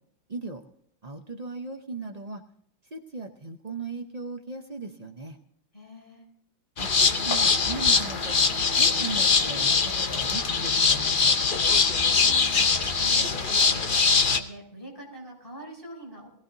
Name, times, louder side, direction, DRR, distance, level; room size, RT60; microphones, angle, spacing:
voice 1, 0.3-0.6 1.0-2.4 2.9-5.4 6.8-8.4 8.8-11.4, right 3 dB, 75° right, 3 dB, 0.3 m, -37 dB
voice 2, 5.7-6.2 11.9-16.3, right 1 dB, 10° left, -2 dB, 6.8 m, -44 dB
sound 1, 6.8-14.4, left 5 dB, 50° left, 0.6 m, -22 dB
20.5 x 16.0 x 2.7 m, 0.70 s
omnidirectional pair, 2.2 m